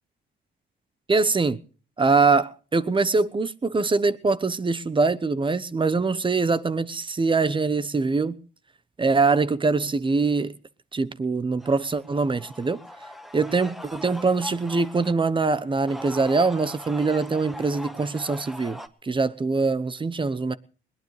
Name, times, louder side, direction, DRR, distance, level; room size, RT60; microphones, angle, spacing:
voice 1, 1.1-1.6 2.0-8.4 9.0-10.5 10.9-12.8 13.3-20.5, right 4 dB, 25° right, 1.0 m, -23 dB
sound 1, 11.6-15.1 15.7-18.9, equal, ahead, 1.3 m, -41 dB
21.0 x 19.5 x 3.3 m
cardioid pair, 90°, 20 cm